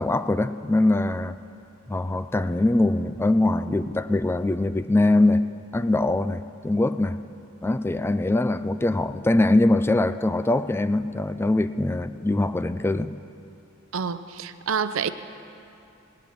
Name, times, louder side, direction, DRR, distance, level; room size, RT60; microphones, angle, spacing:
voice 1, 0.0-1.4 1.9-5.4 5.7-7.2 7.6-13.1, left 2 dB, 10° left, 12 dB, 0.3 m, -22 dB
voice 2, 13.9-15.1, right 6 dB, 75° right, 12 dB, 0.6 m, -28 dB
18.0 x 7.7 x 9.5 m, 2.7 s
head